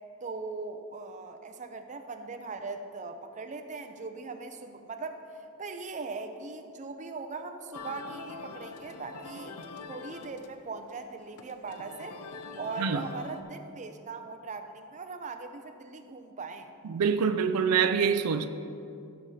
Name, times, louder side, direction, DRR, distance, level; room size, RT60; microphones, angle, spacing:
voice 1, 0.2-9.5 9.9-12.2 12.6-16.7, right 4 dB, 35° right, 6 dB, 0.6 m, -40 dB
sound 1, 7.7-13.4, left 4 dB, 90° left, 0.6 m, -44 dB
voice 2, 16.8-18.5, right 6 dB, 80° right, 9 dB, 0.4 m, -25 dB
15.5 x 5.3 x 4.2 m, 2.6 s
head